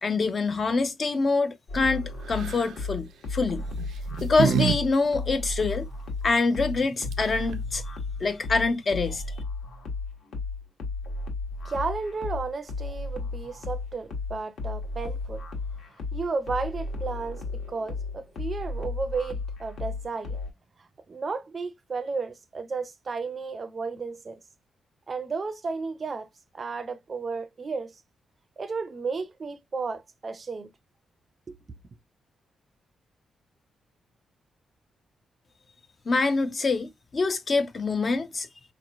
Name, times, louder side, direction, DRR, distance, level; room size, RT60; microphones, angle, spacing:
voice 1, 0.0-3.7 4.2-5.9 6.2-7.8 8.2-9.2 36.1-38.5, left 3 dB, 30° left, 0.4 m, -25 dB
sound 1, 1.7-20.5, left 3 dB, 65° left, 1.2 m, -34 dB
sound 2, 2.3-2.7 3.7-4.8 5.1-5.2 6.8-6.9 7.1-7.5, right 9 dB, 85° right, 0.5 m, -27 dB
voice 2, 11.6-15.5 16.1-20.4 21.1-24.4 25.1-26.3 26.5-28.0 28.6-30.7 31.5-31.6, right 4 dB, 30° right, 0.5 m, -33 dB
4.2 x 3.0 x 2.4 m
wide cardioid pair, 175°, 0 cm